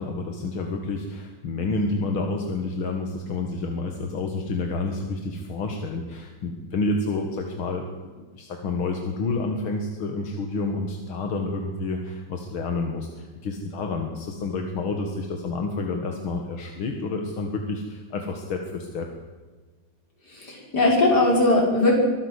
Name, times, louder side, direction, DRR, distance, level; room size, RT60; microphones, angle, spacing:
voice 1, 0.0-19.1, left 3 dB, 80° left, 4 dB, 2.6 m, -29 dB
voice 2, 20.3-21.9, left 2 dB, 50° left, -1 dB, 6.8 m, -19 dB
24.0 x 15.0 x 8.3 m, 1.4 s
omnidirectional pair, 2.2 m